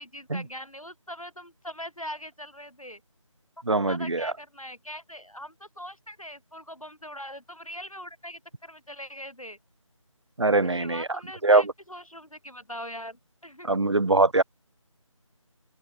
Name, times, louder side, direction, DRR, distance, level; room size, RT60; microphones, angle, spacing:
voice 1, 0.0-3.0 3.9-9.6 10.6-13.8, equal, 90° left, 6.0 m, -41 dB
voice 2, 3.7-4.3 10.4-11.1 11.4-11.6 13.6-14.4, right 2 dB, 55° right, 0.8 m, -22 dB
figure-of-eight pair, 165°, 17 cm